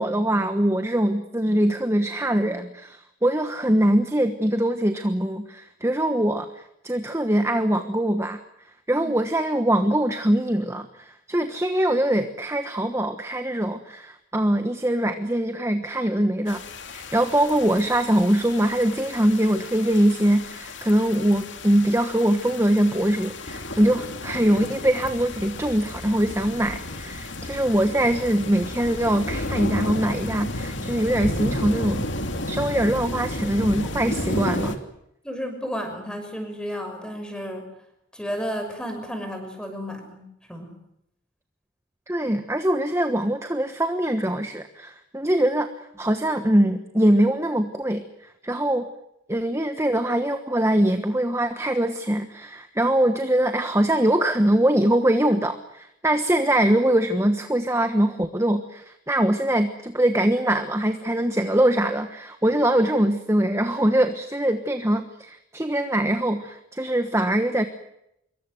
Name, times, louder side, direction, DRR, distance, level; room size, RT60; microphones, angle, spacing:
voice 1, 0.0-8.4 8.9-16.6 16.9-32.1 32.5-34.8 42.1-45.7 46.0-48.9 49.3-67.6, right 1 dB, 15° right, 8 dB, 1.2 m, -22 dB
sound 1, 16.5-34.8, left 1 dB, 60° left, 2.8 m, -32 dB
voice 2, 35.2-37.7 38.1-40.7 62.5-62.6, equal, 5° left, 5 dB, 6.4 m, -32 dB
26.5 x 23.0 x 8.0 m, 0.81 s
head